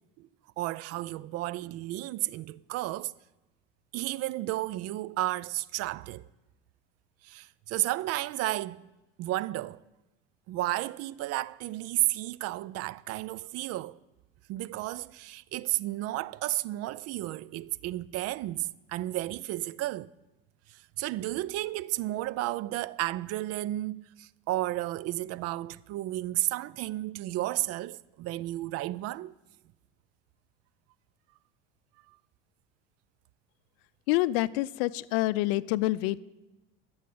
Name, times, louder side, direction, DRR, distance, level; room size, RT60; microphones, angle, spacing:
voice 1, 0.6-3.1 3.9-6.3 7.2-8.9 9.2-9.8 10.5-14.0 14.5-20.1 21.0-29.3, right 16 dB, 55° right, 0.5 m, -32 dB
voice 2, 34.1-36.2, left 17 dB, 75° left, 0.5 m, -27 dB
12.0 x 7.2 x 7.7 m
supercardioid pair, 85°, 29 cm